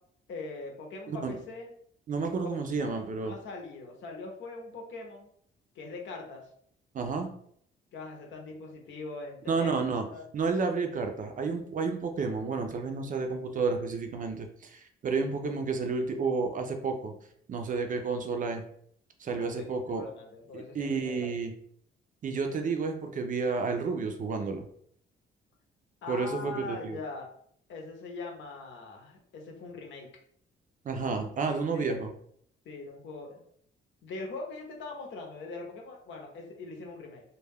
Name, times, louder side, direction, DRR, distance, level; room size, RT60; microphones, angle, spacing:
voice 1, 0.3-1.7 2.4-5.3 5.7-6.5 7.9-9.7 10.1-10.3 19.3-21.3 26.0-27.3 27.7-30.1 31.5-32.1 32.6-33.4 34.0-37.2, left 3 dB, 70° left, 1 dB, 0.8 m, -42 dB
voice 2, 2.1-3.3 6.9-7.3 9.5-10.0 10.3-17.2 17.5-18.6 19.2-20.0 20.5-21.5 22.2-24.7 26.1-27.0 30.8-32.1, right 4 dB, 40° right, 5 dB, 0.5 m, -31 dB
2.2 x 2.2 x 3.4 m, 0.65 s
cardioid pair, 90°, 20 cm